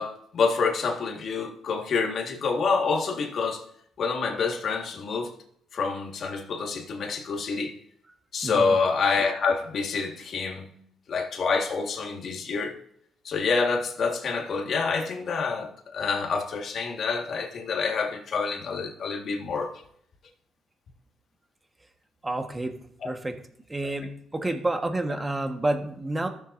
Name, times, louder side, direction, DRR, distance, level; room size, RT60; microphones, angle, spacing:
voice 1, 0.0-3.6 4.0-5.3 5.7-7.8 8.3-10.7 11.1-12.7 13.2-19.7 23.0-23.1, left 4 dB, 60° left, 1.6 m, -27 dB
voice 2, 8.4-8.7 22.2-22.7 23.0-23.4 23.7-26.3, right 2 dB, 20° right, 1.3 m, -29 dB
14.5 x 6.8 x 2.6 m
cardioid pair, 90°, 0 cm